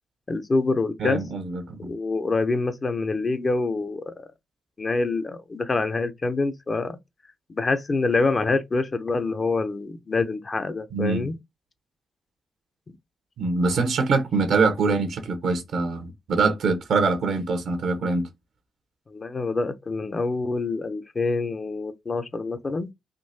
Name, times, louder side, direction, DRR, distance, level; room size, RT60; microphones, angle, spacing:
voice 1, 0.3-1.2 1.8-4.2 4.8-7.0 7.5-11.4 12.9-13.0 19.1-22.9, left 3 dB, 40° left, 0.6 m, -26 dB
voice 2, 1.0-1.9 10.9-11.3 13.4-18.3, right 4 dB, 75° right, 0.9 m, -24 dB
3.7 x 2.6 x 2.7 m
hypercardioid pair, 45°, 0 cm